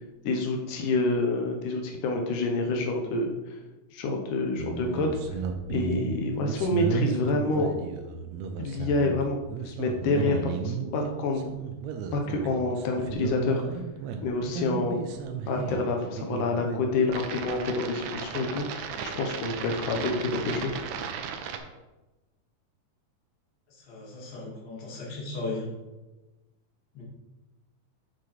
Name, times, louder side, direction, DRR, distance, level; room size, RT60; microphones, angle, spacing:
voice 1, 0.2-3.3 3.9-5.2 5.7-7.7 8.6-9.4 9.6-11.4 12.1-13.6 14.2-15.0 15.5-18.9 19.2-20.8, left 3 dB, 90° left, 2 dB, 2.4 m, -27 dB
sound 1, 4.6-21.6, right 7 dB, 75° right, 1.9 m, -34 dB
voice 2, 23.7-25.7 26.9-27.0, left 3 dB, 45° left, -4 dB, 2.2 m, -36 dB
8.3 x 6.6 x 3.2 m, 1.1 s
omnidirectional pair, 3.6 m